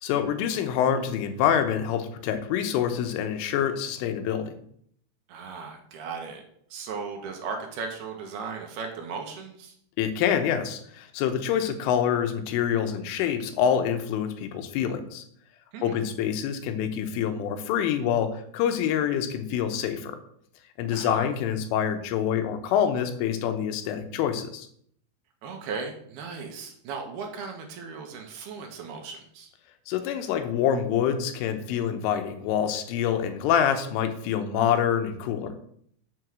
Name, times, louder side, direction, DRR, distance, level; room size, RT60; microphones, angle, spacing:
voice 1, 0.0-4.5 10.0-15.3 15.8-20.2 20.8-24.7 29.9-35.5, left 9 dB, 85° left, 8 dB, 3.5 m, -26 dB
voice 2, 5.3-6.4 6.7-9.7 15.7-16.0 20.9-21.3 25.4-29.5, right 5 dB, 65° right, 3 dB, 2.7 m, -37 dB
7.8 x 7.1 x 6.4 m, 0.66 s
omnidirectional pair, 5.6 m